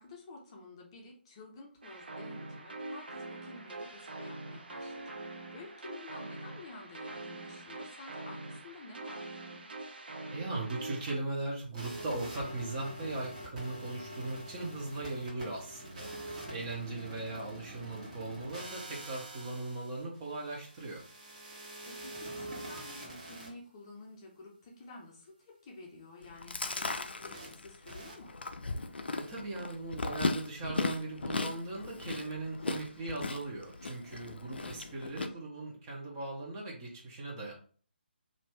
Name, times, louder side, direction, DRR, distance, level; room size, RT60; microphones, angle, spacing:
voice 1, 0.0-9.4 16.9-17.2 21.8-28.4 34.5-35.2, left 2 dB, 25° left, -1 dB, 0.7 m, -51 dB
sound 1, 1.8-11.2, right 2 dB, 60° right, 0.6 m, -44 dB
voice 2, 10.3-16.1 16.5-21.0 29.2-37.5, right 2 dB, 20° right, -3 dB, 0.8 m, -39 dB
sound 2, 11.7-23.5 27.3-27.5 27.9-28.1, right 1 dB, 40° right, 1.2 m, -45 dB
Chewing mastication, 26.2-35.3, left 3 dB, 65° left, 0.4 m, -37 dB
2.6 x 2.5 x 3.4 m, 0.44 s
figure-of-eight pair, 145°, 6 cm